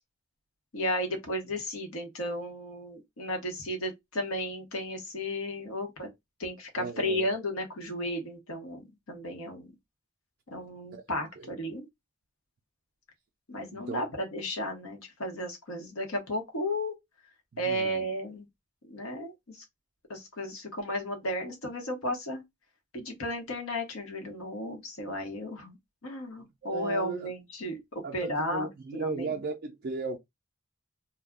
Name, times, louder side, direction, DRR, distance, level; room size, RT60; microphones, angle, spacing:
voice 1, 0.7-6.1 6.4-9.7 10.5-11.9 13.5-16.9 17.6-18.5 18.9-19.6 20.1-22.4 22.9-25.8 26.0-29.3, left 1 dB, 75° left, 0.9 m, -34 dB
voice 2, 6.8-7.3 10.9-11.0 11.4-11.5 13.7-14.0 17.5-18.1 26.7-27.3 28.0-30.2, right 3 dB, 45° right, 0.4 m, -36 dB
2.3 x 2.0 x 3.4 m
head